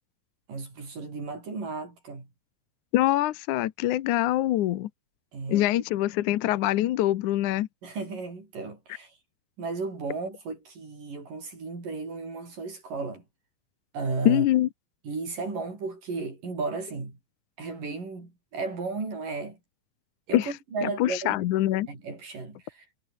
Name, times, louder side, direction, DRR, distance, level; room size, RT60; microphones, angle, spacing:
voice 1, 0.5-2.3 5.3-5.8 7.8-9.2 9.6-13.2 13.9-14.5 15.0-17.2 17.6-19.6 20.3-21.4 21.9-22.9, right 4 dB, 80° right, 9.4 m, -34 dB
voice 2, 2.9-4.9 5.5-7.7 14.3-14.7 20.3-20.5 20.8-21.9, left 14 dB, 70° left, 2.4 m, -24 dB
omnidirectional pair, 3.8 m